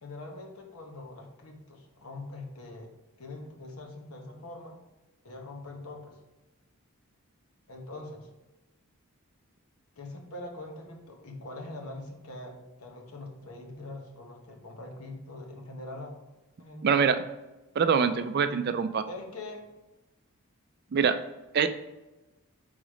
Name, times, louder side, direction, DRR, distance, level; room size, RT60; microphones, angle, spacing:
voice 1, 0.0-2.9 3.2-4.8 5.2-6.2 7.7-8.3 10.0-16.1 16.6-16.9 19.1-19.7, left 2 dB, 75° left, 1 dB, 1.1 m, -43 dB
voice 2, 16.8-17.2 17.8-19.0 20.9-21.2 21.5-21.8, right 6 dB, 45° right, 10 dB, 0.3 m, -24 dB
5.0 x 3.9 x 4.9 m, 1.1 s
head